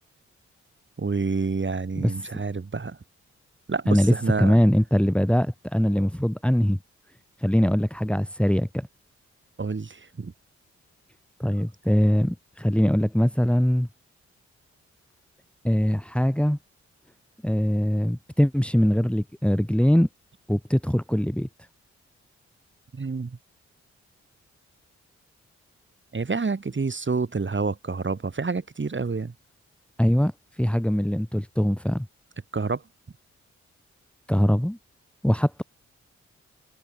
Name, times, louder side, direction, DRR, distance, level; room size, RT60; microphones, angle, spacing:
voice 1, 1.0-3.0 3.7-4.6 9.6-10.3 22.9-23.4 26.1-29.3 32.5-32.8, right 4 dB, 40° right, 2.6 m, -28 dB
voice 2, 3.9-6.8 7.4-8.9 11.4-13.9 15.6-16.6 17.4-20.1 20.5-21.5 30.0-30.3 30.6-32.1 34.3-34.8 35.2-35.6, equal, 5° left, 2.4 m, -22 dB
supercardioid pair, 40°, 30 cm